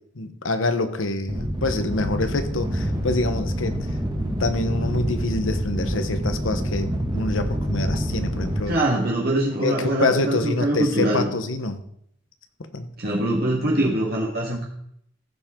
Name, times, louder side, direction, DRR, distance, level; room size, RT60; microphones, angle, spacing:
voice 1, 0.1-3.8 4.3-8.7 9.6-11.8 12.6-12.9, left 2 dB, 85° left, 9 dB, 1.1 m, -26 dB
sound 1, 1.3-8.6, equal, 20° right, 1.8 m, -27 dB
voice 2, 8.7-11.3 13.0-14.7, right 1 dB, 55° right, -2 dB, 1.7 m, -23 dB
15.0 x 7.4 x 3.7 m, 0.70 s
head